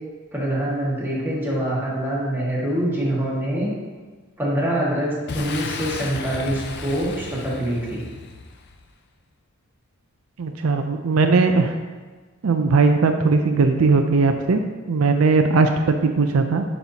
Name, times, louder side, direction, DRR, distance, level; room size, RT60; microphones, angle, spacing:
voice 1, 0.3-3.7 4.4-8.0, right 1 dB, 10° right, -7 dB, 1.7 m, -25 dB
Boom, 5.3-8.9, left 4 dB, 55° left, 0.5 m, -34 dB
voice 2, 10.4-11.7 12.4-14.6 14.9-16.6, right 4 dB, 75° right, 6 dB, 0.5 m, -18 dB
9.0 x 5.5 x 2.8 m, 1.4 s
head